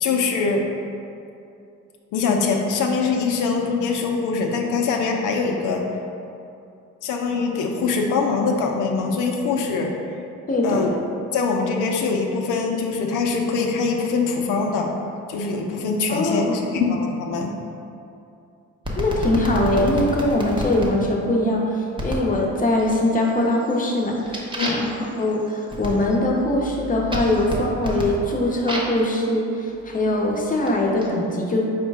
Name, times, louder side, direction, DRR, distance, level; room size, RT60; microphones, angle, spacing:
voice 1, 0.0-0.7 2.1-5.9 7.0-10.0 10.6-11.0 11.3-14.9 15.3-17.5 24.5-24.7, left 4 dB, 85° left, 1 dB, 0.6 m, -23 dB
voice 2, 10.5-10.8 16.1-16.6 19.0-31.6, left 1 dB, 25° left, -1 dB, 0.7 m, -22 dB
sound 1, 18.8-20.9 22.0-22.3 22.8-23.3 23.6-29.0 29.8-31.1, equal, 15° right, 0.7 m, -30 dB
5.1 x 2.2 x 4.6 m, 2.6 s
cardioid pair, 90°, 30 cm